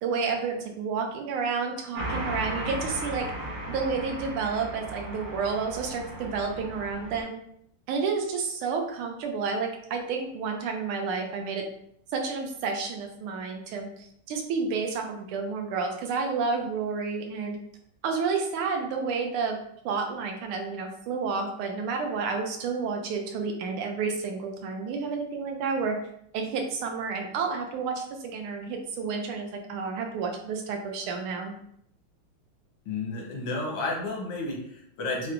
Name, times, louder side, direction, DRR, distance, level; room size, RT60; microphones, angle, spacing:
voice 1, 0.0-3.3 3.7-7.4 7.9-11.6 12.1-17.6 18.0-19.6 19.8-26.0 26.3-31.5, right 5 dB, 85° right, 3 dB, 1.5 m, -30 dB
sound 1, 1.9-7.2, right 1 dB, 45° right, 1.2 m, -36 dB
voice 2, 32.8-35.3, left 2 dB, 90° left, 0 dB, 1.8 m, -32 dB
5.9 x 2.2 x 2.5 m, 0.70 s
omnidirectional pair, 2.4 m